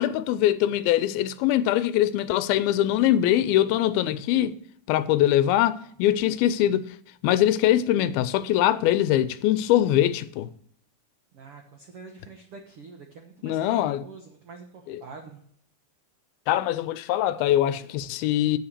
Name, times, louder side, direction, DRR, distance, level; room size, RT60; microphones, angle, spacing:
voice 1, 0.0-4.6 4.9-6.9 7.2-10.5 13.4-14.0 14.9-15.0 16.5-18.6, left 12 dB, 85° left, 2.4 m, -22 dB
voice 2, 11.3-15.4, right 4 dB, 75° right, 1.3 m, -46 dB
8.8 x 7.6 x 6.6 m
omnidirectional pair, 4.4 m